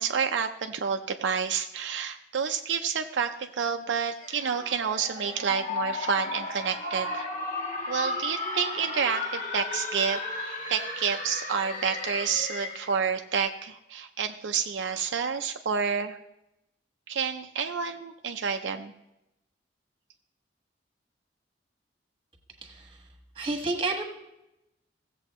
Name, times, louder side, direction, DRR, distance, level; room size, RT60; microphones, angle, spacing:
voice 1, 0.0-7.3 7.9-10.2 10.7-16.2 17.1-18.9, right 6 dB, 75° right, 5 dB, 0.5 m, -29 dB
sound 1, 4.2-13.0, left 2 dB, 40° left, 1.5 m, -34 dB
voice 2, 22.6-23.0 23.3-24.0, right 2 dB, 30° right, 3 dB, 1.4 m, -30 dB
16.0 x 7.5 x 3.1 m, 0.90 s
head